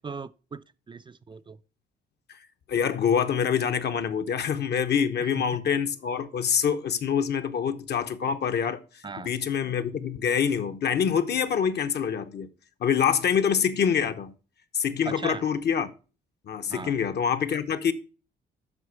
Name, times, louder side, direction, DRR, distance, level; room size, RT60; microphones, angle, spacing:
voice 1, 0.0-1.6 5.2-5.4 9.0-9.3 15.1-15.4 16.7-16.9, right 4 dB, 25° right, 0.4 m, -38 dB
voice 2, 2.7-8.8 9.2-12.5 12.8-14.3 14.7-15.9 16.5-17.9, left 7 dB, 55° left, 0.9 m, -25 dB
7.9 x 5.7 x 4.6 m
cardioid pair, 90°, 20 cm